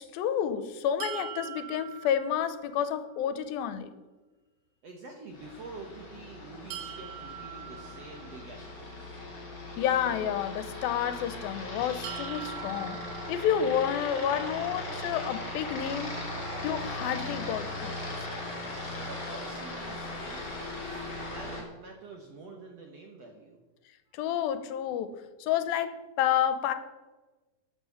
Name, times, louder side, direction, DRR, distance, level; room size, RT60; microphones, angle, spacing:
voice 1, 0.0-3.9 9.8-13.0 13.3-16.1 16.6-18.2 24.1-25.2 25.4-26.7, left 9 dB, 85° left, 11 dB, 2.5 m, -30 dB
sound 1, 1.0-3.0 6.7-8.8 12.0-14.1, right 10 dB, 80° right, 2.8 m, -43 dB
voice 2, 4.8-9.2 19.0-20.8 21.3-23.6 24.1-24.2, right 3 dB, 65° right, 2 dB, 1.7 m, -47 dB
Aircraft, 5.3-21.6, left 2 dB, 30° left, 3.5 m, -38 dB
12.0 x 6.8 x 6.9 m, 1.2 s
omnidirectional pair, 4.3 m